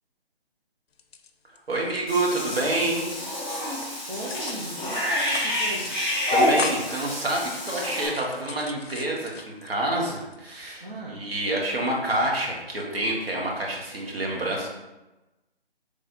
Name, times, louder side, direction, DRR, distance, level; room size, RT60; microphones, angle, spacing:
sound 1, 0.9-2.0 2.3-3.2 3.6-3.9 4.3-4.8 5.1-5.6 5.8-5.9 6.2-7.1 7.5-9.7 10.2-10.8, left 6 dB, 75° left, 0.5 m, -38 dB
voice 1, 1.7-3.1 6.3-14.7, right 1 dB, 70° right, -1 dB, 1.1 m, -28 dB
Cat / Bathtub (filling or washing), 2.1-8.1, left 1 dB, 5° left, 1.3 m, -28 dB
voice 2, 4.1-6.0 10.8-11.3, right 1 dB, 50° right, -6 dB, 0.8 m, -37 dB
3.9 x 3.3 x 2.7 m, 1.0 s
figure-of-eight pair, 165°, 31 cm